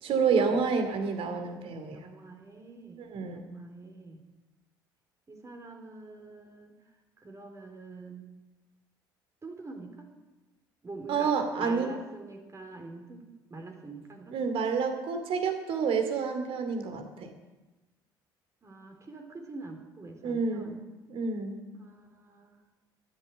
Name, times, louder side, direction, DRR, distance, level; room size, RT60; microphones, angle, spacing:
voice 1, 0.0-2.0 3.0-3.4 11.1-11.9 14.3-17.3 20.2-20.8 21.1-21.6, right 5 dB, 55° right, 7 dB, 2.6 m, -29 dB
voice 2, 1.9-4.2 5.3-6.8 7.2-8.2 9.4-10.1 10.8-11.3 11.6-13.2 13.5-14.4 18.6-20.8 21.8-22.6, right 3 dB, 25° right, 4 dB, 3.4 m, -45 dB
13.0 x 10.5 x 8.5 m, 1.1 s
figure-of-eight pair, 55°, 11 cm